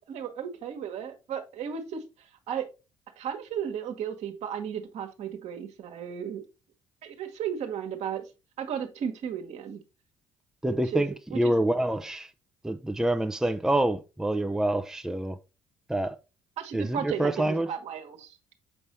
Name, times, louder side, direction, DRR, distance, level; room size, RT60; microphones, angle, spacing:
voice 1, 0.1-2.0 2.5-2.7 3.2-6.4 7.0-8.2 8.6-9.8 10.7-11.0 11.3-11.4 16.6-18.4, right 8 dB, 60° right, 1.4 m, -34 dB
voice 2, 10.6-12.3 12.6-15.4 15.9-16.2 16.7-17.7, right 1 dB, 5° right, 0.6 m, -27 dB
7.0 x 5.4 x 3.1 m
hypercardioid pair, 55°, 13 cm